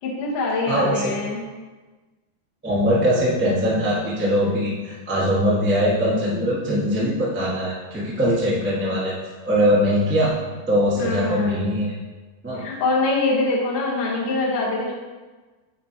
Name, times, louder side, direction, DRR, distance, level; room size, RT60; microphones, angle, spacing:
voice 1, 0.0-1.4 11.0-11.5 12.5-14.9, left 2 dB, 75° left, -4 dB, 2.8 m, -24 dB
voice 2, 0.7-1.2 2.6-9.1 9.4-10.3 10.7-11.9 12.4-12.6, equal, 15° right, -8 dB, 0.4 m, -21 dB
8.9 x 4.8 x 2.9 m, 1.3 s
omnidirectional pair, 3.7 m